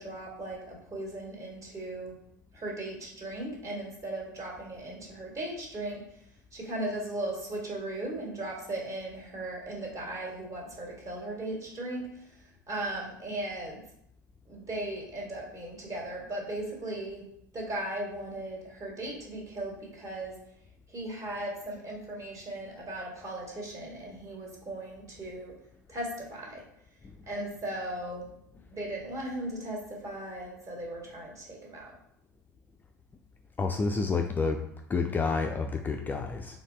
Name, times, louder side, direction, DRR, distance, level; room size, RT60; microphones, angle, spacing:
voice 1, 0.0-2.1 2.5-6.0 6.5-12.1 12.7-13.8 14.5-17.2 17.5-20.3 20.9-25.5 25.9-26.6 27.3-28.3 28.7-31.9, right 1 dB, 30° right, -2 dB, 1.7 m, -37 dB
voice 2, 33.6-34.6 34.9-36.6, left 4 dB, 20° left, 4 dB, 0.3 m, -29 dB
4.0 x 3.6 x 3.2 m, 0.73 s
figure-of-eight pair, 75°, 10 cm